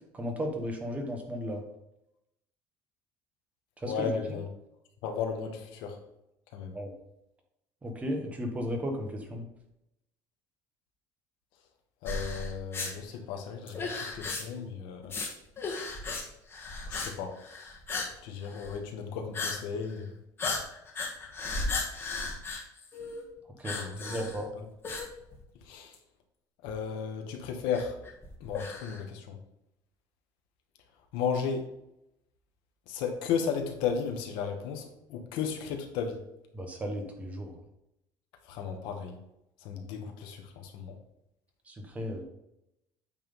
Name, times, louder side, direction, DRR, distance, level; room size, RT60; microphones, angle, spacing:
voice 1, 0.1-1.6 3.8-4.1 6.7-6.9 7.8-9.5 23.6-24.5 36.5-37.5 41.7-42.2, equal, 15° right, 2 dB, 1.3 m, -35 dB
voice 2, 3.8-4.5 5.0-6.0 6.5-6.8 12.0-13.8 14.1-15.1 16.9-17.4 18.2-20.1 23.7-24.2 24.5-24.6 25.7-25.9 26.6-28.0 28.4-29.4 31.1-31.7 32.9-34.8 35.1-36.2 38.4-39.2 39.6-41.0, left 6 dB, 75° left, 4 dB, 1.4 m, -34 dB
sound 1, 12.1-12.9 13.7-14.6 15.0-15.3 15.6-16.2 16.5-17.1 17.4-18.1 18.4-18.7 19.3-19.6 19.9-20.0 20.4-23.2 23.6-24.4 24.8-25.6 25.9-26.0 26.7-26.8 27.7-29.0, left 3 dB, 25° left, 1.6 m, -35 dB
8.9 x 3.6 x 5.4 m, 0.85 s
cardioid pair, 150°, 9 cm